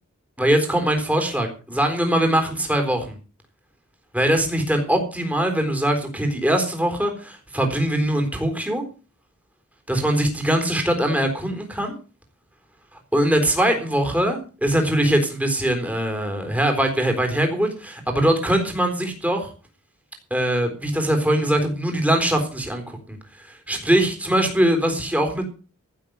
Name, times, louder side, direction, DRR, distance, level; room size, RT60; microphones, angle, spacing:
voice 1, 0.4-3.2 4.1-8.8 9.9-11.9 13.1-19.5 20.3-23.2 23.7-25.5, right 1 dB, 5° right, 4 dB, 3.9 m, -22 dB
15.5 x 7.4 x 7.9 m, 0.36 s
head